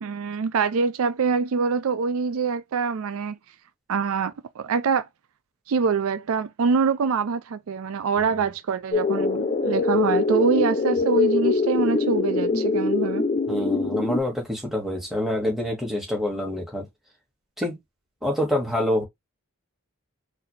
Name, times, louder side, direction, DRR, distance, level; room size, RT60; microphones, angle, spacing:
voice 1, 0.0-3.4 3.9-5.1 5.7-13.2, right 5 dB, 70° right, 0.4 m, -25 dB
sound 1, 8.9-14.2, left 4 dB, 30° left, 0.5 m, -23 dB
voice 2, 13.5-16.8 17.6-17.8 18.2-19.0, left 1 dB, ahead, 1.6 m, -26 dB
4.0 x 2.6 x 3.2 m
head